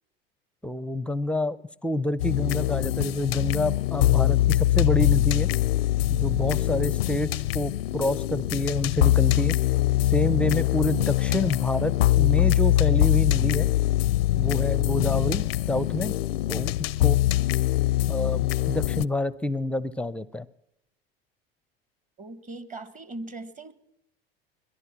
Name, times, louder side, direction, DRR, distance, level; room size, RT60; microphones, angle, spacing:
voice 1, 0.6-5.5 6.1-9.6 10.1-13.7 14.4-16.1 16.5-17.2 18.1-20.5, left 1 dB, 5° left, 19 dB, 0.5 m, -28 dB
sound 1, 2.2-19.0, left 15 dB, 90° left, 0.5 m, -23 dB
voice 2, 22.2-23.7, right 2 dB, 25° right, 16 dB, 1.3 m, -39 dB
21.5 x 11.0 x 5.9 m, 0.82 s
hypercardioid pair, 90°, 29 cm